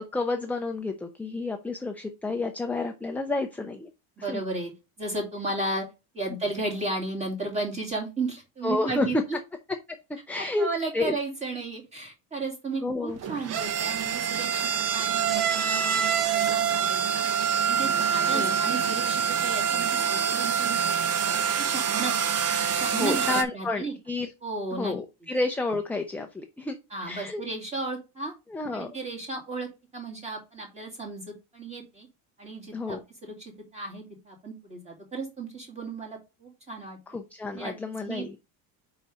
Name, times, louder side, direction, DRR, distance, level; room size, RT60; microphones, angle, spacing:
voice 1, 0.0-3.9 4.3-4.4 8.6-9.2 10.3-10.7 10.9-11.1 12.8-13.2 18.3-18.5 22.9-24.3 24.7-26.8 27.0-27.4 28.5-28.9 32.7-33.0 37.1-38.4, left 2 dB, 5° left, 3 dB, 0.4 m, -30 dB
voice 2, 4.2-4.7 5.0-5.9 6.1-9.4 10.4-17.3 17.7-20.8 21.2-22.1 22.7-23.9 24.4-24.9 26.9-28.3 28.7-32.1 32.4-37.2 37.5-37.7 38.1-38.4, right 3 dB, 15° right, 0 dB, 2.4 m, -34 dB
sound 1, 13.1-23.4, right 7 dB, 40° right, 0.8 m, -26 dB
4.9 x 4.1 x 5.3 m, 0.27 s
cardioid pair, 145°, 40 cm